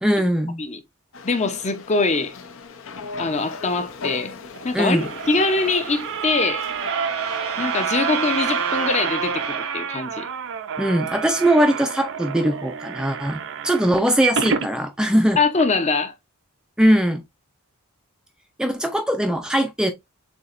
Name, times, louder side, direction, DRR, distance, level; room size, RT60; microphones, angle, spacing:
voice 1, 0.0-0.6 4.7-5.1 10.8-15.4 16.8-17.2 18.6-19.9, equal, 5° right, 0.5 m, -20 dB
sound 1, 1.1-6.9, left 4 dB, 65° left, 0.8 m, -38 dB
voice 2, 1.2-2.3 3.2-4.3 4.6-6.6 7.6-10.3 15.4-16.1, left 3 dB, 30° left, 0.8 m, -23 dB
sound 2, 4.5-14.7 15.2-15.3 15.5-15.6, right 7 dB, 60° right, 0.6 m, -28 dB
Trumpet, 4.9-10.0, right 3 dB, 90° right, 1.3 m, -36 dB
7.2 x 2.9 x 2.5 m
head